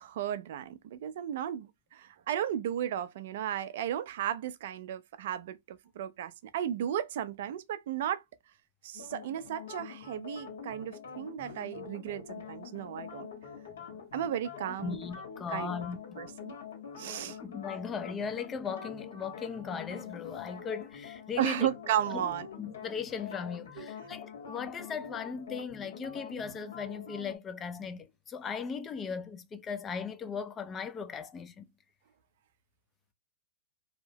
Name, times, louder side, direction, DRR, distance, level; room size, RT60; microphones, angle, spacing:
voice 1, 0.0-8.2 8.8-13.3 14.1-15.0 15.5-15.7 16.2-16.5 17.0-17.4 21.4-22.5 23.8-23.9, right 10 dB, 60° right, 0.4 m, -34 dB
sound 1, 8.9-27.4, left 7 dB, 80° left, 1.3 m, -45 dB
voice 2, 14.8-16.2 17.3-21.7 22.1-22.3 22.6-31.6, left 6 dB, 20° left, 0.4 m, -38 dB
2.7 x 2.0 x 2.7 m
hypercardioid pair, 130°, 0 cm